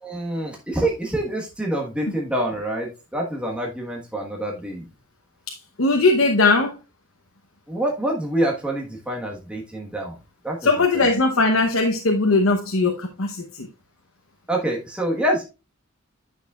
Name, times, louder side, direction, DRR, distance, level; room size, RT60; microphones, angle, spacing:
voice 1, 0.0-4.9 7.7-10.1 10.4-11.1 14.5-15.4, right 1 dB, 5° right, 1.3 m, -26 dB
voice 2, 5.5-6.7 10.6-13.7, left 3 dB, 75° left, 0.9 m, -20 dB
9.3 x 6.3 x 2.4 m
head